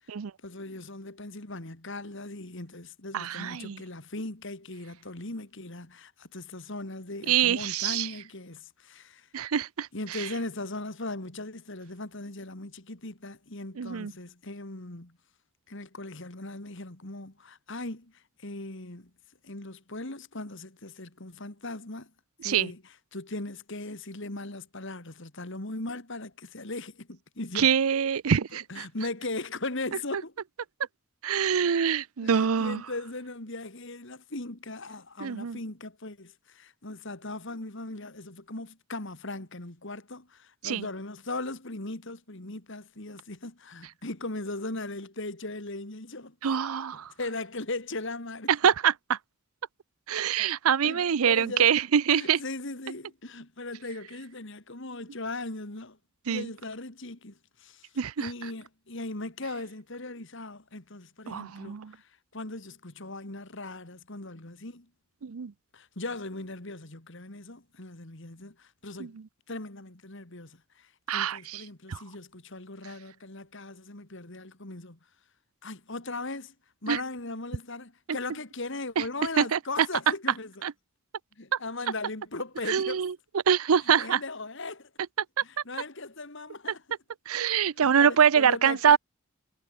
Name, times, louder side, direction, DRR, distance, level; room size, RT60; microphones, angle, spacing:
voice 1, 0.4-9.3 9.9-15.2 15.7-19.1 19.4-22.1 22.4-22.8 23.1-27.7 28.7-30.3 32.2-46.4 47.2-48.5 50.8-51.7 52.1-56.0 56.3-57.9 58.2-64.9 65.7-69.2 69.5-75.0 75.6-76.5 76.8-80.6 81.4-83.0 84.0-84.9 85.4-86.8 87.7-89.0, left 2 dB, 60° left, 2.6 m, -38 dB
voice 2, 3.1-3.8 7.3-8.1 9.3-9.9 13.8-14.1 22.4-22.7 27.6-28.9 31.2-32.8 35.2-35.6 40.6-40.8 46.4-47.1 48.6-49.2 50.1-52.4 56.3-56.5 58.0-58.3 61.3-61.9 65.2-65.5 69.0-69.1 71.1-71.6 71.9-72.0 76.9-77.0 79.0-79.1 79.4-79.6 80.6-80.7 82.7-83.1 83.5-84.2 87.3-89.0, right 7 dB, 90° right, 0.6 m, -24 dB
head